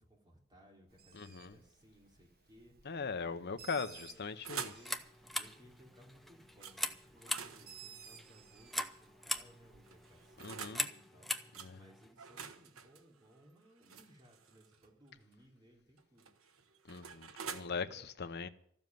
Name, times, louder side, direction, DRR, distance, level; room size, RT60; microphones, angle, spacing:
voice 1, 0.0-16.3 17.4-18.0, equal, 20° right, 3.3 m, -63 dB
Bird, 0.9-10.5, right 8 dB, 50° right, 1.4 m, -59 dB
voice 2, 1.1-1.5 2.8-4.7 10.4-10.9 11.6-11.8 16.9-18.5, left 5 dB, 55° left, 0.8 m, -40 dB
sound 1, 3.9-4.9 6.6-6.8 7.2-9.1 9.8-10.8 11.5-11.7 12.2-14.9 16.0-17.6, right 6 dB, 85° right, 1.2 m, -48 dB
sound 2, 4.7-12.1, left 1 dB, ahead, 0.7 m, -42 dB
14.0 x 7.2 x 9.4 m
head